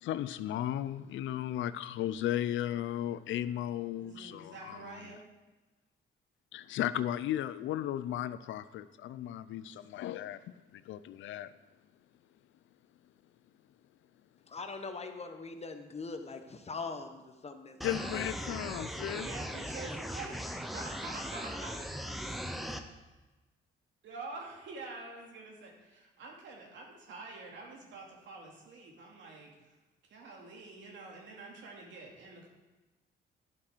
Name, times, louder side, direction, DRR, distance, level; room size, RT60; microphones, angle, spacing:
voice 1, 0.0-5.2 6.5-10.4 10.7-11.5 17.8-19.3, left 12 dB, 75° left, 0.5 m, -35 dB
voice 2, 4.0-5.2 19.1-21.7 24.0-29.7 30.1-32.5, right 3 dB, 70° right, 2.6 m, -47 dB
voice 3, 14.5-18.1, left 4 dB, 30° left, 1.0 m, -42 dB
sound 1, 17.8-22.8, equal, ahead, 0.8 m, -39 dB
11.5 x 7.4 x 4.6 m
cardioid pair, 90°, 20 cm